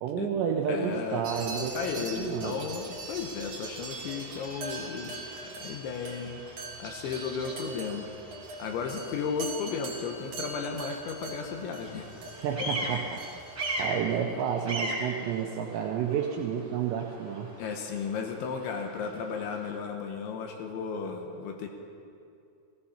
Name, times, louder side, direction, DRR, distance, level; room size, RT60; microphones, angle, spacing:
voice 1, 0.0-2.6 12.3-13.0 13.8-17.5, right 8 dB, 90° right, 1 dB, 2.5 m, -30 dB
voice 2, 0.7-1.2 1.7-5.1 5.4-6.4 6.8-8.1 8.6-12.2 13.6-13.9 17.6-21.7, left 5 dB, 75° left, 3 dB, 3.2 m, -34 dB
Bird vocalization bird call bird song, 1.0-19.8, right 1 dB, 25° right, 1.6 m, -42 dB
sound 1, 1.2-13.9, right 3 dB, 70° right, 1.5 m, -42 dB
16.5 x 15.5 x 4.3 m, 2.5 s
omnidirectional pair, 5.8 m